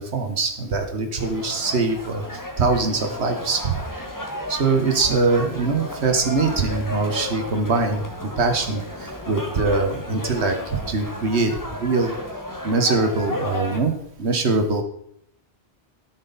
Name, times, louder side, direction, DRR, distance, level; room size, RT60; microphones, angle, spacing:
voice 1, 0.0-2.2 2.6-3.8 4.5-12.1 12.6-13.9 14.2-14.8, right 3 dB, 80° right, 6 dB, 1.6 m, -22 dB
sound 1, 1.2-13.8, left 1 dB, 20° left, 1.1 m, -33 dB
13.0 x 6.3 x 4.1 m, 0.72 s
omnidirectional pair, 1.1 m